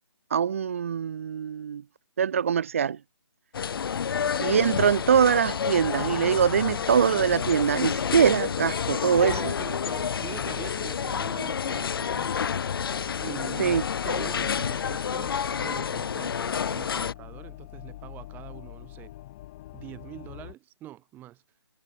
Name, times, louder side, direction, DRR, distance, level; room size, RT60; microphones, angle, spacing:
voice 1, 0.3-1.8 2.2-3.0 4.4-9.5 13.6-13.8, right 7 dB, 30° right, 0.3 m, -23 dB
sound 1, 3.5-17.1, left 7 dB, 55° left, 0.4 m, -29 dB
sound 2, 8.0-20.5, left 15 dB, 20° left, 0.8 m, -44 dB
voice 2, 9.2-12.4 13.2-19.1 19.7-21.4, right 14 dB, 10° right, 2.4 m, -44 dB
figure-of-eight pair, 155°, 15 cm